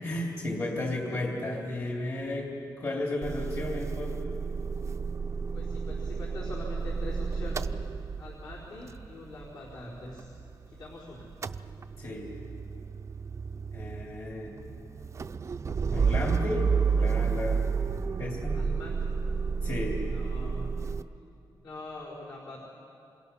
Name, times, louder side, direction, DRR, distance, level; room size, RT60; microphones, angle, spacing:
voice 1, 0.0-4.3 12.0-12.3 13.7-14.5 15.9-17.7 18.2-18.6 19.6-20.0, left 1 dB, 40° left, -1 dB, 3.0 m, -33 dB
Motor vehicle (road) / Engine starting / Idling, 3.2-10.9 11.2-21.0, right 5 dB, 35° right, 0.6 m, -31 dB
voice 2, 5.5-7.8 8.2-10.3 10.7-11.3 18.5-19.2 20.1-20.7 21.6-22.6, left 2 dB, 60° left, -7 dB, 4.6 m, -43 dB
28.0 x 27.0 x 5.7 m, 2.8 s
wide cardioid pair, 130°, 8 cm